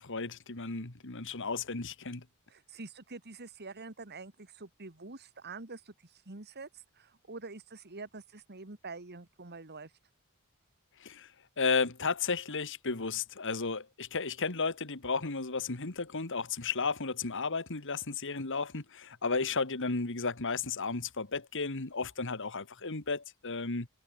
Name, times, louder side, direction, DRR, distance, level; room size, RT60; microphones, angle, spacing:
voice 1, 0.0-2.2 11.0-11.3 11.6-23.9, left 4 dB, 60° left, 2.1 m, -33 dB
voice 2, 2.5-9.9, right 3 dB, 50° right, 2.0 m, -46 dB
head